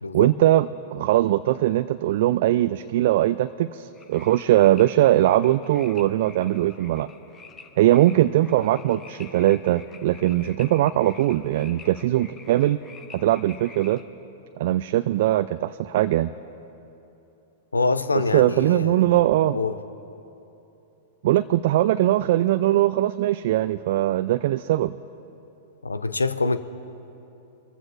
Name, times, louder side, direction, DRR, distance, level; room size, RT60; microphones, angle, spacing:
voice 1, 0.1-7.1 7.8-12.8 13.1-14.0 14.6-16.3 18.3-19.6 21.2-25.0, right 14 dB, 55° right, 12 dB, 0.3 m, -21 dB
sound 1, 3.9-14.0, left 5 dB, 20° left, 1.2 m, -48 dB
voice 2, 17.7-19.2 19.5-19.8 25.8-26.6, left 3 dB, 85° left, 13 dB, 0.5 m, -25 dB
23.5 x 14.5 x 2.5 m, 2.9 s
figure-of-eight pair, 100°, 0 cm